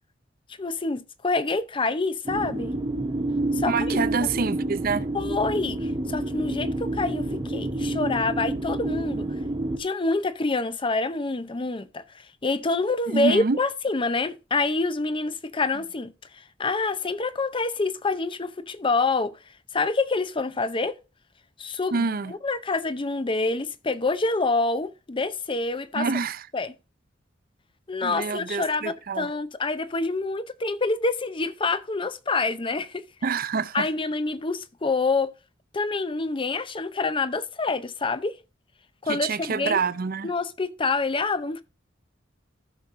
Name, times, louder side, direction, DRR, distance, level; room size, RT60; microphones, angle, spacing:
voice 1, 0.6-2.7 3.6-4.3 5.1-9.3 9.8-12.0 12.4-16.1 16.6-19.3 19.7-21.0 21.6-26.1 26.5-26.7 27.9-33.0 33.7-35.3 35.7-38.4 39.0-39.8 40.2-41.6, left 3 dB, 30° left, 0.7 m, -27 dB
sound 1, 2.3-9.8, right 2 dB, 25° right, 0.9 m, -28 dB
voice 2, 3.6-5.1 13.1-13.6 21.9-22.3 25.9-26.5 28.0-29.3 33.2-33.9 39.1-40.3, right 4 dB, 50° right, 0.6 m, -27 dB
15.0 x 6.3 x 2.6 m
head